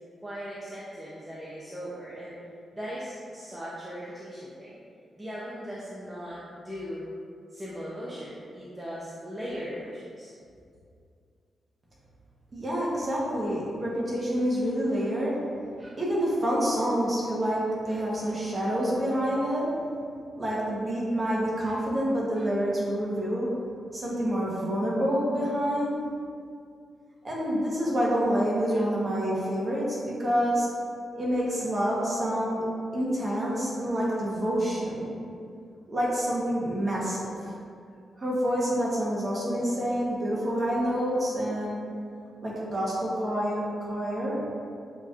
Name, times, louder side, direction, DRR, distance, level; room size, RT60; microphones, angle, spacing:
voice 1, 0.2-2.4 2.7-4.8 5.2-7.1 7.5-10.3, equal, 10° right, -8 dB, 0.5 m, -38 dB
voice 2, 12.5-15.4 15.8-19.7 20.4-23.5 23.9-26.0 27.2-30.7 31.1-32.6 32.9-35.1 35.9-37.3 38.2-41.8 42.4-44.4, equal, 25° right, -5 dB, 1.0 m, -27 dB
6.8 x 2.9 x 2.4 m, 2.4 s
wide cardioid pair, 155°, 0 cm